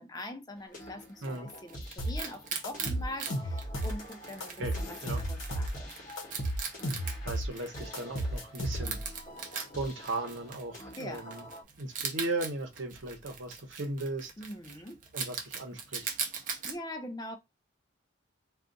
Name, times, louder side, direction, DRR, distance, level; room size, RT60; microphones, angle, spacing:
voice 1, 0.0-5.9 11.0-11.3 14.4-15.0 16.6-17.4, left 1 dB, 20° left, 0.4 m, -43 dB
sound 1, 0.5-11.6, equal, 40° left, 1.0 m, -48 dB
Wild animals, 0.8-16.8, right 6 dB, 40° right, 0.6 m, -41 dB
sound 2, 2.0-2.2 2.6-4.0 4.4-5.8 6.2-7.5 7.9-9.1, right 1 dB, 75° left, 0.8 m, -33 dB
voice 2, 7.2-9.0 9.5-11.4 11.8-14.3 15.1-16.1, right 2 dB, 65° right, 0.9 m, -37 dB
2.4 x 2.4 x 3.7 m
head